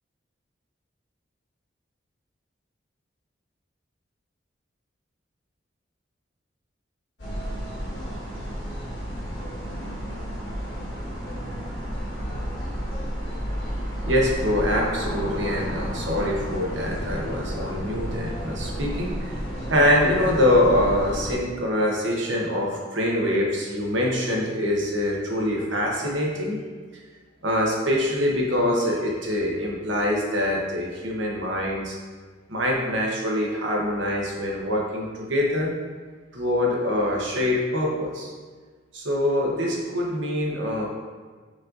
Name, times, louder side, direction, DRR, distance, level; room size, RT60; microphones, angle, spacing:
sound 1, 7.2-21.3, equal, 80° left, 1.4 m, -32 dB
voice 1, 14.0-19.1 19.7-26.6 27.4-32.0 32.5-35.7 36.3-38.3 38.9-40.8, left 1 dB, 75° right, -2 dB, 0.9 m, -24 dB
5.1 x 3.9 x 2.5 m, 1.5 s
head